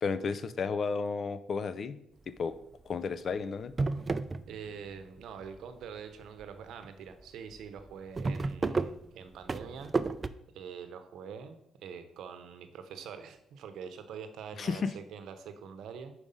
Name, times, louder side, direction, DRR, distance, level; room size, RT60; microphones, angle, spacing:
voice 1, 0.0-2.0 2.3-2.5 2.9-3.7 14.6-14.9, left 5 dB, 50° left, 13 dB, 0.5 m, -32 dB
sound 1, 2.4-2.7 3.2-3.3 3.6-4.9 5.2-5.8 6.4-6.5 6.8-6.9 7.2-7.3 7.6-10.3, right 3 dB, 30° right, 0.3 m, -32 dB
voice 2, 4.5-9.9 10.5-16.1, right 7 dB, 80° right, 9 dB, 0.8 m, -45 dB
5.0 x 4.8 x 5.5 m, 0.75 s
cardioid pair, 90°, 0 cm